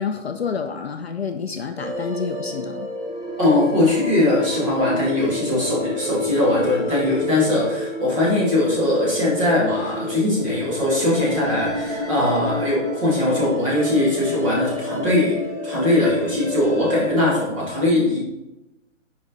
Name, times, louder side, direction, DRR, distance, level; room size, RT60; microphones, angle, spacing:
voice 1, 0.0-2.9, left 6 dB, 55° left, 6 dB, 0.4 m, -28 dB
sound 1, 1.8-17.1, left 1 dB, ahead, 2.2 m, -29 dB
voice 2, 3.4-18.2, left 1 dB, 25° right, -6 dB, 2.1 m, -20 dB
5.1 x 5.0 x 4.0 m, 0.94 s
hypercardioid pair, 175°, 39 cm